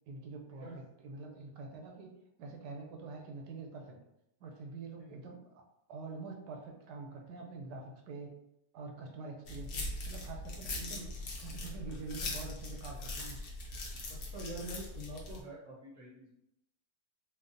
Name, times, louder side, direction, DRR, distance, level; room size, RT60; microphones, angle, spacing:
voice 1, 0.1-0.7 1.0-2.1 2.4-4.0 4.4-5.6 5.9-8.4 8.7-11.1 11.4-13.4, right 4 dB, 85° right, 2 dB, 1.2 m, -46 dB
sound 1, 9.5-15.4, left 2 dB, 80° left, 0.5 m, -41 dB
voice 2, 14.2-16.3, right 1 dB, 60° right, -5 dB, 0.8 m, -45 dB
3.4 x 2.0 x 2.5 m, 0.84 s
omnidirectional pair, 1.8 m